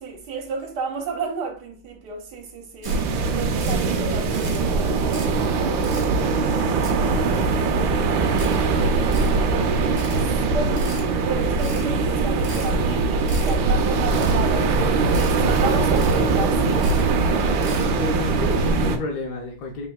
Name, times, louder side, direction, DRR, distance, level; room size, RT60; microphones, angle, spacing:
voice 1, 0.0-2.9 3.3-4.7 9.2-10.9 11.2-16.8, right 4 dB, 55° right, 1.5 m, -32 dB
sound 1, 2.8-3.0 3.3-3.8 4.2-4.6 5.0-5.4 5.7-6.1 6.5-7.3 7.7-7.8 8.3-8.6 9.0-9.3 9.8-10.2 10.6-11.1 11.5-11.9 12.3-12.7 13.1-13.5 13.9-14.4 14.7-14.8 15.1-15.4 15.7-16.3 16.7-17.1 17.4-17.9, right 1 dB, 30° right, 0.9 m, -39 dB
sound 2, 2.9-19.0, right 4 dB, 75° right, 1.3 m, -21 dB
voice 2, 17.3-19.9, left 4 dB, 65° left, 1.1 m, -31 dB
4.4 x 3.9 x 2.2 m
omnidirectional pair, 2.4 m